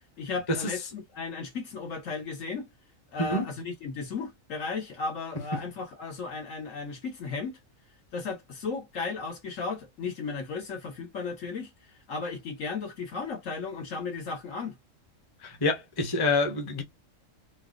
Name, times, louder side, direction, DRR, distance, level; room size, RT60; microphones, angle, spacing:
voice 1, 0.2-2.7 3.1-7.6 8.1-11.7 12.1-14.8, left 4 dB, 75° left, 1.6 m, -35 dB
voice 2, 15.4-16.8, left 2 dB, 20° left, 0.7 m, -26 dB
4.0 x 2.1 x 2.5 m
omnidirectional pair, 1.4 m